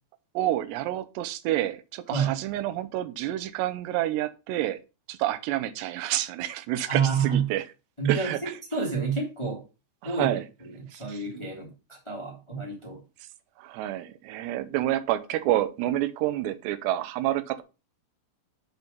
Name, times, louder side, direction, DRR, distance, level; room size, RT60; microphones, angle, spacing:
voice 1, 0.3-4.8 5.1-7.6 8.1-8.4 10.0-10.4 10.9-11.2 13.6-17.6, right 14 dB, 85° right, 11 dB, 2.9 m, -28 dB
voice 2, 6.9-7.4 8.0-9.6 10.0-13.0, right 6 dB, 10° left, -1 dB, 1.6 m, -29 dB
8.0 x 4.6 x 5.3 m, 0.30 s
omnidirectional pair, 4.8 m